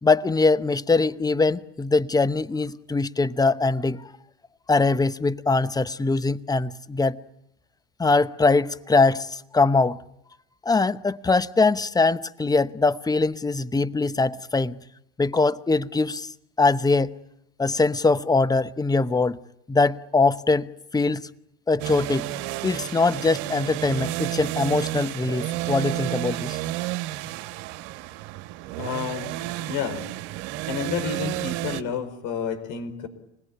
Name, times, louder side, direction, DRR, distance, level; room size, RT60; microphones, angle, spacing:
voice 1, 0.0-4.1 4.7-7.2 8.0-10.0 10.6-14.8 15.2-16.3 16.6-17.1 17.6-19.4 19.7-21.3 21.7-22.3 22.6-26.6, left 3 dB, 10° left, 0.9 m, -22 dB
sound 1, 21.8-31.8, right 15 dB, 70° right, 1.7 m, -31 dB
voice 2, 28.8-29.4 29.7-30.0 30.6-33.1, left 6 dB, 65° left, 5.1 m, -30 dB
26.5 x 20.5 x 10.0 m
supercardioid pair, 95°, 32 cm